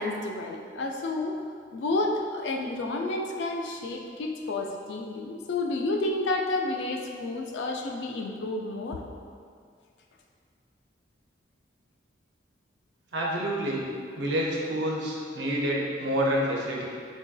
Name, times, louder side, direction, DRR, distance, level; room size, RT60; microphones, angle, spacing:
voice 1, 0.0-1.4 1.7-9.0, left 2 dB, 70° left, 2 dB, 0.3 m, -30 dB
voice 2, 13.1-13.9 14.2-16.8, equal, 65° right, -3 dB, 0.5 m, -28 dB
3.8 x 2.5 x 2.2 m, 2.2 s
head